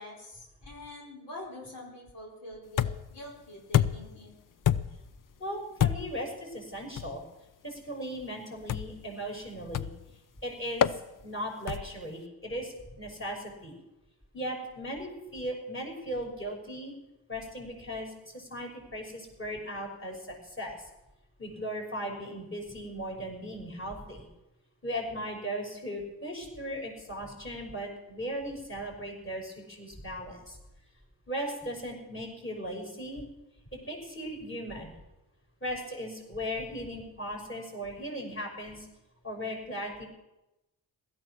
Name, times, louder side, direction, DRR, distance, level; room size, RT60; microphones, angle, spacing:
voice 1, 0.0-4.3, left 1 dB, 75° left, -2 dB, 4.6 m, -45 dB
Bashing Car Interior Singles A, 2.8-3.2 3.7-4.2 4.6-5.1 5.8-6.2 7.0-7.2 8.7-9.0 9.7-10.1 10.8-11.0 11.7-12.0, left 10 dB, 50° left, 0.7 m, -27 dB
voice 2, 5.4-7.2 7.6-9.9 10.4-13.8 14.3-16.9 17.3-20.9 21.4-24.3 24.8-30.6 31.3-33.2 33.7-34.9 35.6-38.9 39.2-40.1, equal, 30° left, 0 dB, 6.0 m, -37 dB
16.5 x 13.0 x 6.3 m, 0.97 s
cardioid pair, 55°, 42 cm